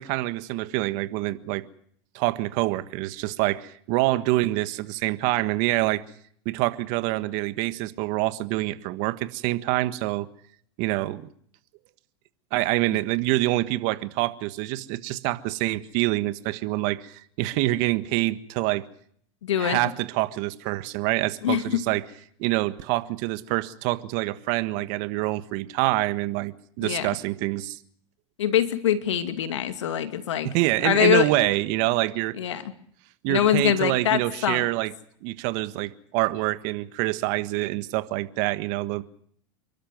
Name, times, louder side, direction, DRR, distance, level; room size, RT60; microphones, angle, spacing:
voice 1, 0.0-1.6 2.1-6.0 6.4-10.3 10.8-11.3 12.5-18.9 19.6-22.0 22.4-27.8 30.4-32.4 33.2-34.9 35.2-39.0, right 18 dB, 60° right, 1.5 m, -26 dB
voice 2, 19.4-19.8 21.4-21.8 26.8-27.1 28.4-30.5 30.8-31.3 32.4-32.6 33.3-34.6, left 10 dB, 90° left, 2.4 m, -23 dB
29.5 x 12.5 x 9.4 m
hypercardioid pair, 110°, 15 cm